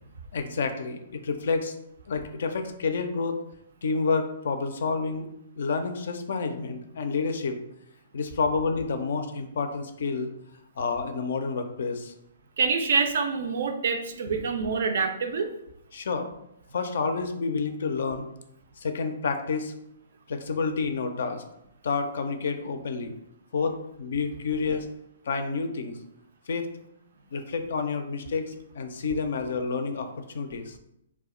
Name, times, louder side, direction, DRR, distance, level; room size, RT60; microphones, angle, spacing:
voice 1, 0.3-1.7 2.1-3.4 3.8-5.3 5.6-7.6 8.1-10.3 10.8-12.1 14.3-14.4 15.9-16.3 16.7-18.3 18.8-19.7 20.3-21.4 21.8-23.1 23.5-24.9 25.3-25.9 26.5-26.7 27.3-30.8, left 4 dB, 65° left, 7 dB, 0.4 m, -29 dB
voice 2, 12.6-15.5, right 5 dB, 65° right, 6 dB, 0.3 m, -26 dB
2.3 x 2.0 x 3.6 m, 0.79 s
hypercardioid pair, 125°, 0 cm